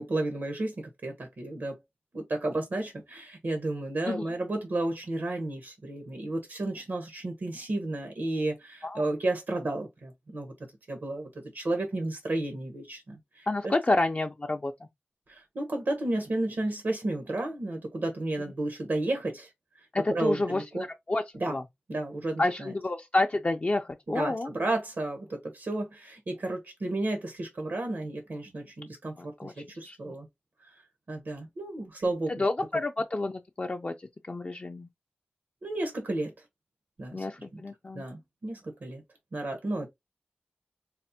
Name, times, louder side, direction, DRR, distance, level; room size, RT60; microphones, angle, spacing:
voice 1, 0.0-1.8 2.1-10.5 10.9-13.7 15.3-19.5 20.1-20.8 21.3-21.6 21.9-22.7 24.1-30.3 30.6-30.7 31.1-32.4 35.6-36.3 37.0-37.3 37.5-37.6 37.9-39.0 39.3-39.9, right 2 dB, 75° right, 1.0 m, -32 dB
voice 2, 13.5-14.7 19.9-20.6 21.1-21.2 21.5-21.6 22.4-24.5 29.2-29.5 29.9-30.1 32.3-33.9 34.3-34.9 37.1-38.0, left 2 dB, 40° left, 0.4 m, -29 dB
4.1 x 2.0 x 2.7 m
wide cardioid pair, 55°, 4 cm